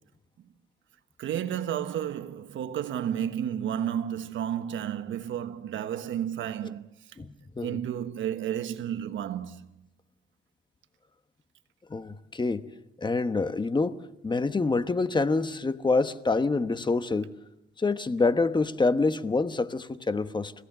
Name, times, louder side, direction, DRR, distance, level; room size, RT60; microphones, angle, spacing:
voice 1, 1.2-6.9 7.6-9.7, right 10 dB, 75° right, 1.3 m, -32 dB
voice 2, 7.2-7.8 11.9-12.6 13.0-14.0 14.2-17.3 17.8-20.5, left 3 dB, 20° left, 1.1 m, -26 dB
29.5 x 16.5 x 6.7 m
cardioid pair, 90°, 20 cm